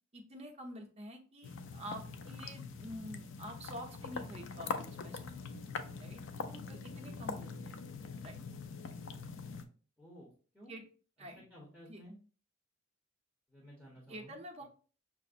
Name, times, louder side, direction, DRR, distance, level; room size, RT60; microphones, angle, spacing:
voice 1, 0.1-5.3 6.0-6.2 6.7-7.8 8.2-8.4 10.7-10.8 11.2-11.4 11.9-12.0 14.1-14.6, equal, 30° right, 1 dB, 0.7 m, -47 dB
sound 1, 1.4-9.7, left 4 dB, 65° left, 0.4 m, -43 dB
voice 2, 10.0-10.3 10.5-10.8 11.2-12.2 13.5-14.6, equal, 5° left, -5 dB, 0.9 m, -55 dB
5.9 x 2.0 x 2.4 m, 0.39 s
head